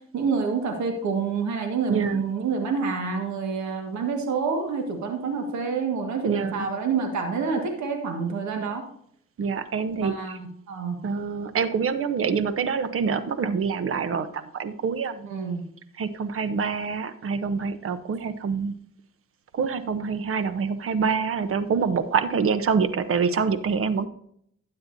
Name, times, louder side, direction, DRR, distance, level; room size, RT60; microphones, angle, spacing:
voice 1, 0.1-8.8 10.0-11.0 15.2-15.6, right 5 dB, 70° right, 3 dB, 1.7 m, -28 dB
voice 2, 1.9-2.2 6.2-6.7 9.4-10.4 11.0-15.3 16.0-18.7 19.5-24.1, right 5 dB, 45° right, 12 dB, 0.9 m, -26 dB
12.5 x 8.7 x 2.7 m, 0.67 s
cardioid pair, 90°, 30 cm